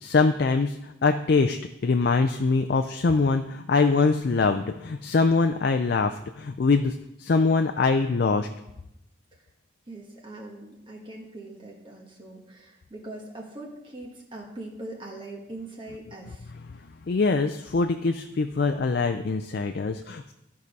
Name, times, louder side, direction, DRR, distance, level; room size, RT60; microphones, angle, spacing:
voice 1, 0.0-8.5 17.1-20.3, left 4 dB, 55° left, 6 dB, 0.4 m, -23 dB
voice 2, 9.9-16.5, right 2 dB, 25° right, -2 dB, 1.4 m, -41 dB
13.5 x 4.9 x 5.3 m, 0.88 s
head